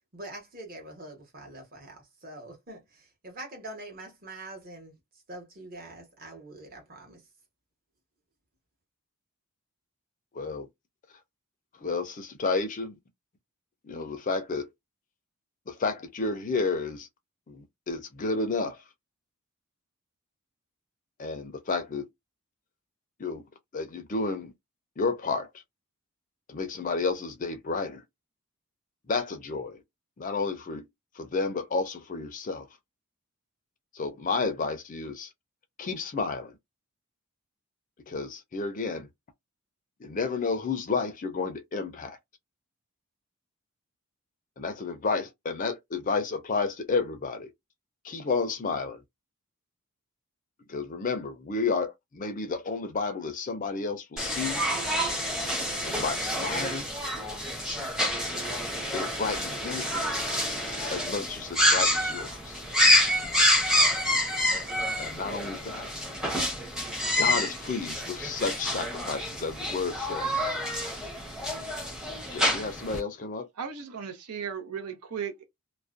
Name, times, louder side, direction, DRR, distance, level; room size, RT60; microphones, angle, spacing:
voice 1, 0.1-4.9 5.3-7.2, right 1 dB, 40° right, 0.9 m, -44 dB
voice 2, 10.3-10.7 11.8-13.0 13.8-14.7 15.7-17.1 17.5-18.8 21.2-22.1 23.2-23.4 23.7-24.5 25.0-25.5 26.5-28.0 29.1-29.8 30.2-30.9 31.2-32.7 33.9-35.3 35.8-36.5 38.1-39.1 40.0-42.2 44.6-47.5 48.0-49.0 50.7-54.6 55.8-56.9 58.9-60.2 60.9-62.6 65.0-65.9 67.2-70.6 72.3-73.5, left 4 dB, 35° left, 0.4 m, -31 dB
sound 1, 54.2-73.0, equal, 5° right, 0.6 m, -28 dB
voice 3, 73.6-75.4, right 7 dB, 90° right, 0.7 m, -36 dB
2.4 x 2.0 x 2.4 m
head